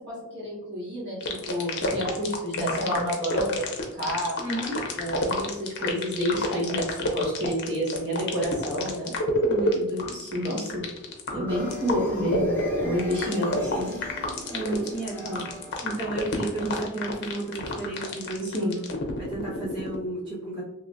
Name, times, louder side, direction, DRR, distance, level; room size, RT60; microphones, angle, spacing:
voice 1, 0.0-3.6 3.9-4.3 5.0-9.1 9.8-10.8 11.3-14.0 15.2-15.4 18.4-18.8, equal, 55° right, -5 dB, 1.4 m, -29 dB
sound 1, 1.2-19.9, left 2 dB, 55° left, 0.7 m, -29 dB
voice 2, 4.4-4.8 9.5-9.8 13.5-13.6 14.5-15.2 15.8-18.6 19.2-20.6, right 2 dB, 25° right, -9 dB, 1.2 m, -32 dB
sound 2, 11.5-17.0, right 1 dB, 10° left, 0.9 m, -41 dB
3.6 x 3.0 x 2.5 m, 0.96 s
head